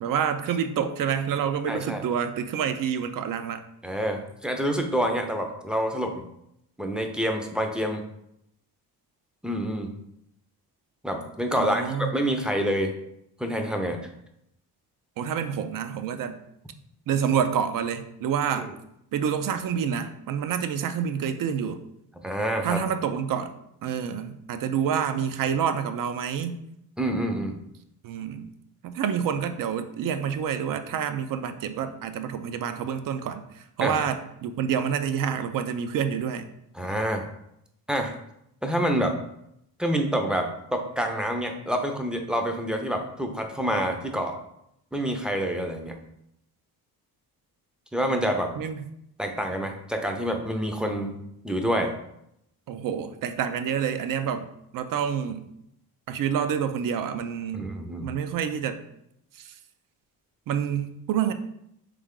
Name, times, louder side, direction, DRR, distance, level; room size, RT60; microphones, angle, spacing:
voice 1, 0.0-3.6 11.6-12.1 15.2-16.4 17.1-18.7 19.1-21.8 22.6-23.5 23.8-26.6 28.0-28.5 28.8-36.5 48.6-48.8 52.7-55.5 56.1-57.7 58.0-58.8 59.4-59.5 60.5-61.3, right 8 dB, 55° right, 9 dB, 0.5 m, -28 dB
voice 2, 1.7-2.0 3.8-6.2 6.8-8.0 9.4-9.9 11.0-12.9 13.4-14.0 18.6-18.7 22.2-22.8 27.0-27.6 33.8-34.1 36.7-37.2 37.9-38.1 38.6-39.2 39.8-44.4 44.9-45.9 47.9-48.5 49.2-51.2 51.4-51.9 57.5-58.1, equal, ahead, 4 dB, 0.5 m, -27 dB
3.5 x 3.3 x 3.7 m, 0.78 s
cardioid pair, 95°, 39 cm